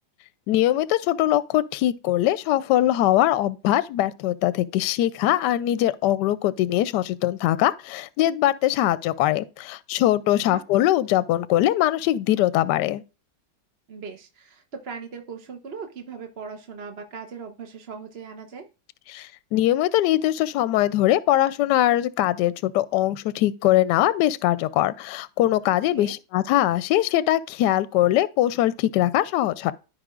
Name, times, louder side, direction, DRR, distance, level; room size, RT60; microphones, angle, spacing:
voice 1, 0.5-13.0 19.1-29.7, left 14 dB, 75° left, 1.1 m, -22 dB
voice 2, 13.9-18.7 25.9-26.1, right 5 dB, 45° right, 1.0 m, -38 dB
15.0 x 5.1 x 2.4 m
omnidirectional pair, 2.0 m